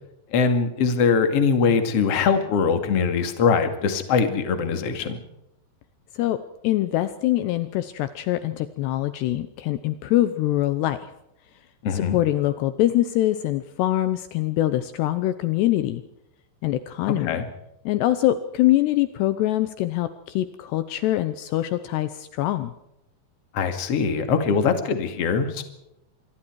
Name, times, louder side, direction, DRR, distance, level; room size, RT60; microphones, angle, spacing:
voice 1, 0.3-5.2 11.8-12.2 17.2-17.5 23.5-25.6, left 5 dB, 40° left, 7 dB, 2.6 m, -22 dB
voice 2, 6.6-11.0 11.9-16.0 16.6-17.4 17.9-22.7, left 14 dB, 75° left, 12 dB, 2.8 m, -24 dB
26.0 x 23.5 x 4.7 m, 0.86 s
omnidirectional pair, 5.2 m